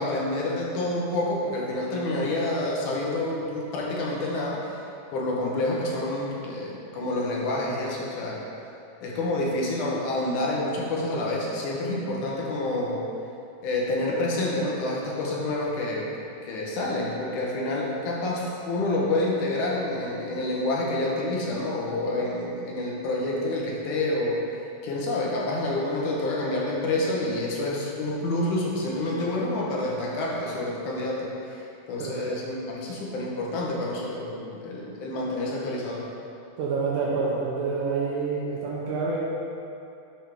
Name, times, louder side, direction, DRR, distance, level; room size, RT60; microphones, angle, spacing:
voice 1, 0.0-4.6 5.1-8.4 9.0-13.0 13.6-16.1 16.4-24.4 24.8-31.6 31.9-36.1, left 2 dB, 70° left, -3 dB, 2.5 m, -28 dB
voice 2, 32.0-32.3 36.6-39.2, right 4 dB, 75° right, -5 dB, 2.4 m, -28 dB
10.0 x 5.5 x 3.6 m, 2.7 s
omnidirectional pair, 3.9 m